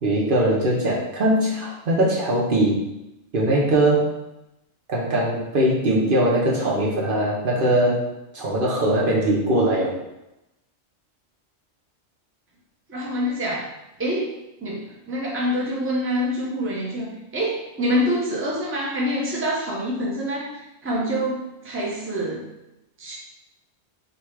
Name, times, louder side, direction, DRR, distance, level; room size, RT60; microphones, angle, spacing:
voice 1, 0.0-2.8 3.3-4.1 4.9-8.0 8.3-9.9, right 1 dB, 50° right, -5 dB, 1.0 m, -21 dB
voice 2, 12.9-13.7 14.0-14.3 14.6-22.4 23.0-23.1, equal, 15° right, -5 dB, 0.7 m, -26 dB
3.9 x 2.3 x 4.6 m, 0.92 s
omnidirectional pair, 1.2 m